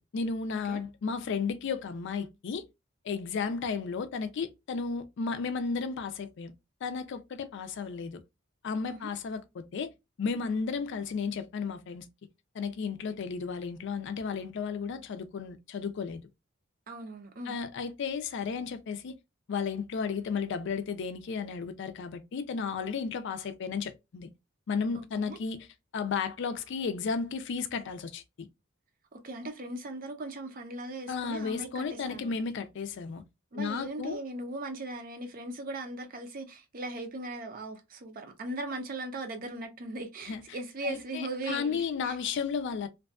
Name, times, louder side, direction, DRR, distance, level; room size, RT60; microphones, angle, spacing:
voice 1, 0.0-2.6 3.0-6.5 6.8-8.2 8.6-9.9 10.2-12.1 12.5-16.2 17.5-19.1 19.5-24.3 24.7-25.7 25.9-28.5 31.1-33.2 33.5-34.2 40.3-40.4 40.8-42.9, left 5 dB, 60° left, 0.4 m, -33 dB
voice 2, 16.9-17.6 24.9-25.4 29.1-32.3 33.5-42.2, right 2 dB, 45° right, 0.6 m, -39 dB
2.5 x 2.3 x 2.3 m
head